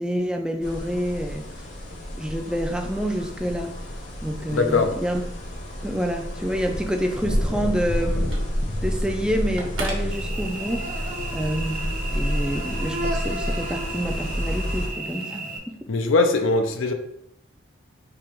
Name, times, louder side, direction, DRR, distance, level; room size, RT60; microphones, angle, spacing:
voice 1, 0.0-1.5 2.2-3.8 4.2-5.2 5.8-15.4, equal, 5° right, 0.4 m, -28 dB
sound 1, 0.6-14.9, equal, 35° left, 0.8 m, -30 dB
voice 2, 4.5-5.0 15.9-16.9, left 3 dB, 75° left, 0.5 m, -21 dB
Telephone, 6.2-11.0, right 2 dB, 80° right, 1.1 m, -40 dB
Cricket / Buzz, 10.1-15.6, right 2 dB, 45° right, 0.7 m, -33 dB
3.6 x 2.9 x 4.5 m
head